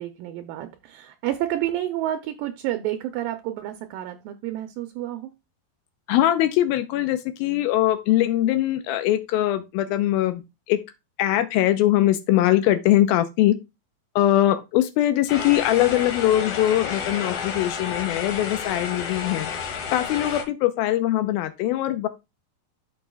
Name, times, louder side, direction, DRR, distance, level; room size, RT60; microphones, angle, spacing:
voice 1, 0.0-5.3, right 13 dB, 80° right, 2.2 m, -30 dB
voice 2, 6.1-10.4 10.7-10.8 11.2-13.6 14.2-19.5 19.9-22.1, left 13 dB, 85° left, 2.5 m, -21 dB
sound 1, 15.3-20.4, left 6 dB, 60° left, 2.3 m, -31 dB
13.0 x 5.5 x 2.3 m
omnidirectional pair, 4.3 m